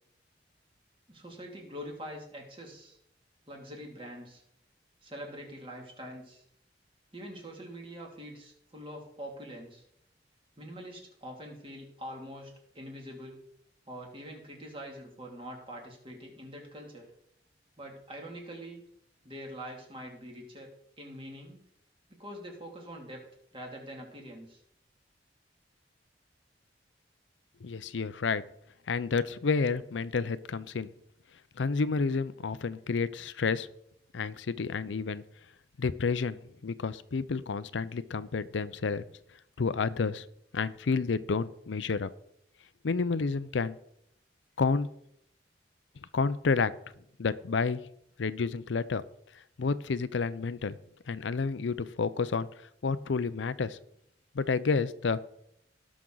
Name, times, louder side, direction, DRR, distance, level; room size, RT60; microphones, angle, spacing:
voice 1, 1.1-3.0 3.5-4.4 5.0-6.4 7.1-9.8 10.6-13.4 13.9-17.1 17.8-18.8 19.2-20.7 21.0-21.6 22.1-23.2 23.5-24.6, equal, 30° right, 0 dB, 2.5 m, -44 dB
voice 2, 27.6-28.4 28.9-30.9 31.6-33.7 34.1-35.2 35.8-39.0 39.6-40.2 40.5-42.1 42.8-43.7 44.6-44.9 46.1-46.7 47.2-47.8 48.2-49.0 49.6-50.8 51.1-52.5 52.8-53.8 54.3-55.2, left 4 dB, 85° left, 15 dB, 0.5 m, -30 dB
18.0 x 6.1 x 3.9 m, 0.73 s
head